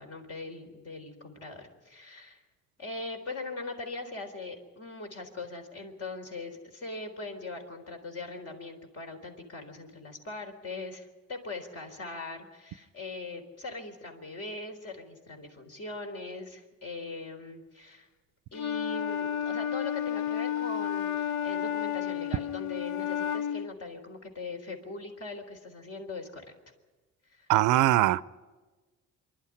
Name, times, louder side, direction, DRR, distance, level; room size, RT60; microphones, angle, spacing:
voice 1, 0.0-2.4 2.8-18.1 18.5-26.4 27.3-27.5, left 3 dB, 50° left, 3 dB, 4.0 m, -41 dB
Wind instrument woodwind instrument, 18.5-23.7, left 9 dB, 70° left, 0.7 m, -31 dB
voice 2, 27.5-28.2, right 15 dB, 90° right, 18 dB, 0.6 m, -21 dB
25.5 x 11.5 x 10.0 m, 1.3 s
cardioid pair, 90°, 30 cm